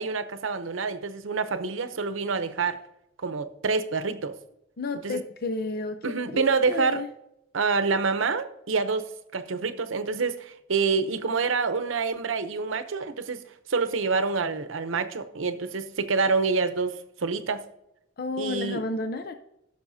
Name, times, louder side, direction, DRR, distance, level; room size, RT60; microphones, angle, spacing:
voice 1, 0.0-2.8 3.2-4.4 5.0-5.2 6.0-7.0 7.5-13.4 13.7-17.6 18.4-18.8, right 4 dB, 75° right, 10 dB, 0.7 m, -27 dB
voice 2, 4.8-7.1 18.2-19.3, left 2 dB, 50° left, 8 dB, 0.5 m, -32 dB
15.5 x 6.7 x 2.7 m, 0.83 s
head